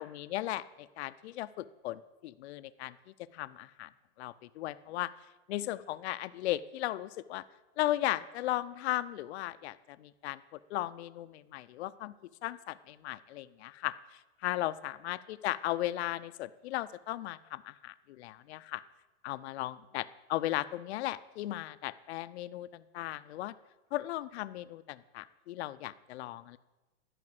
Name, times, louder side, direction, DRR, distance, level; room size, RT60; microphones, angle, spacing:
voice 1, 0.0-3.0 3.3-3.9 4.2-5.1 5.5-7.4 7.8-12.1 12.4-18.8 19.2-23.5 23.9-26.6, left 15 dB, 65° left, 14 dB, 0.5 m, -36 dB
11.0 x 5.1 x 7.9 m, 1.2 s
supercardioid pair, 155°, 35 cm